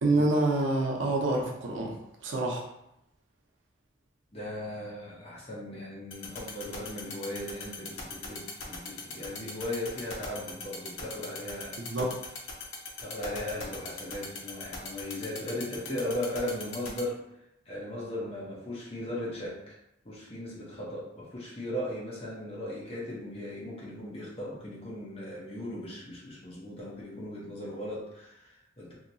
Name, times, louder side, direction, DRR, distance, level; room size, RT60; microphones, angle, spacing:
voice 1, 0.0-2.0 2.2-2.7 11.9-12.2, right 2 dB, 80° right, -2 dB, 0.7 m, -27 dB
voice 2, 4.3-11.8 13.0-17.2 17.7-19.8 20.0-28.9, left 1 dB, 30° left, -5 dB, 0.8 m, -37 dB
sound 1, 6.1-17.0, left 5 dB, 85° left, 0.7 m, -39 dB
2.8 x 2.8 x 2.7 m, 0.82 s
head